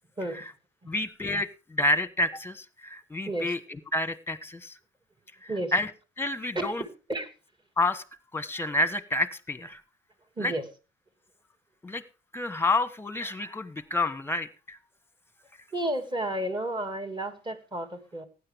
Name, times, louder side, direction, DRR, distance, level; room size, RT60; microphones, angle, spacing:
voice 1, 0.9-4.8 5.4-5.9 6.2-6.8 7.8-8.0 8.3-9.8 10.4-10.5 11.8-12.0 12.3-14.8, left 2 dB, 10° left, 13 dB, 1.2 m, -29 dB
voice 2, 15.7-18.3, right 1 dB, 25° right, 8 dB, 2.3 m, -31 dB
15.5 x 9.9 x 3.5 m, 0.34 s
cardioid pair, 90°, 20 cm